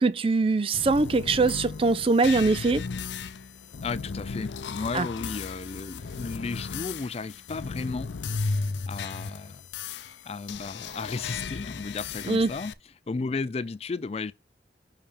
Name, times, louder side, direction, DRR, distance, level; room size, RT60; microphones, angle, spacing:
voice 1, 0.0-2.8 4.9-5.1 12.3-12.5, right 3 dB, 30° right, 0.4 m, -22 dB
sound 1, 0.7-12.7, left 4 dB, 85° left, 0.5 m, -35 dB
voice 2, 3.8-8.1 8.9-9.6 10.2-12.7 13.1-14.3, left 4 dB, 35° left, 0.4 m, -34 dB
5.7 x 5.3 x 3.4 m
head